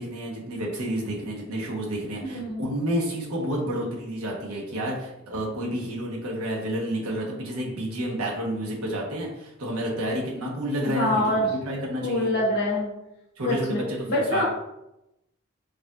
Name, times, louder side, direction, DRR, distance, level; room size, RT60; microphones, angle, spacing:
voice 1, 0.0-12.3 13.4-14.4, equal, 80° right, -2 dB, 1.1 m, -30 dB
voice 2, 2.3-2.7 10.8-11.5 12.0-12.9 13.4-13.8 14.1-14.4, left 1 dB, 50° left, -4 dB, 1.1 m, -25 dB
4.9 x 2.5 x 2.4 m, 0.88 s
head